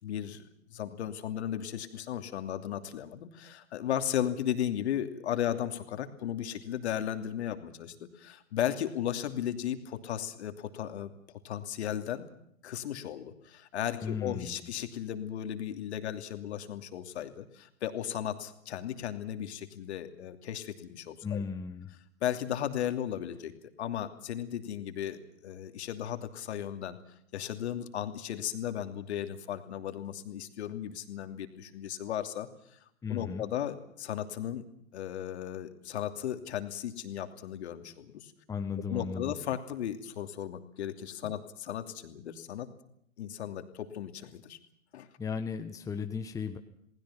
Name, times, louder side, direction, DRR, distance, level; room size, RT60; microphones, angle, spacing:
voice 1, 0.0-12.3 12.6-21.4 22.2-23.5 23.8-27.0 27.3-34.6 34.9-38.3 38.9-42.7 43.2-44.6 44.9-45.1, left 10 dB, 55° left, 8 dB, 2.9 m, -35 dB
voice 2, 14.0-14.6 21.2-21.9 33.0-33.4 38.5-39.3 45.2-46.6, left 6 dB, 10° left, 6 dB, 1.2 m, -35 dB
29.0 x 20.0 x 5.9 m, 0.72 s
figure-of-eight pair, 115°, 40 cm